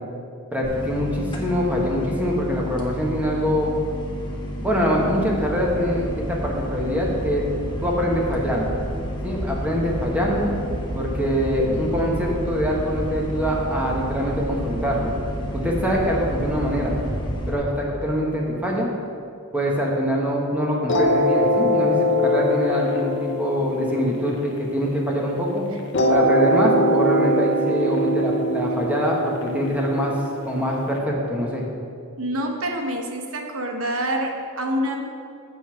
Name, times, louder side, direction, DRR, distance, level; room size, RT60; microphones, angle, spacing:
voice 1, 0.5-3.7 4.6-7.5 7.8-8.7 9.2-10.5 10.9-15.1 15.5-17.0 17.5-18.9 19.5-25.6 26.1-30.2 30.5-31.6, equal, 5° right, -2 dB, 1.2 m, -24 dB
sound 1, 0.6-17.5, equal, 20° left, 1.0 m, -30 dB
sound 2, 20.9-25.3 25.9-30.9, equal, 55° left, 0.8 m, -22 dB
voice 2, 32.2-35.0, right 1 dB, 70° right, 3 dB, 1.0 m, -26 dB
7.8 x 5.5 x 5.7 m, 2.5 s
head